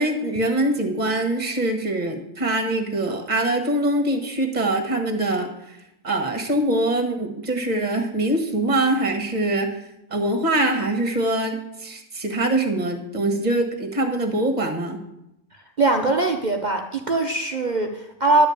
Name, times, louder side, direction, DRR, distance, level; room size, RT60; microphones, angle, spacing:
voice 1, 0.0-5.8 6.0-9.7 10.1-15.0, right 1 dB, 25° right, 4 dB, 1.6 m, -23 dB
voice 2, 15.8-18.5, right 2 dB, 75° right, 3 dB, 0.4 m, -21 dB
11.0 x 5.2 x 8.6 m, 0.84 s
omnidirectional pair, 1.9 m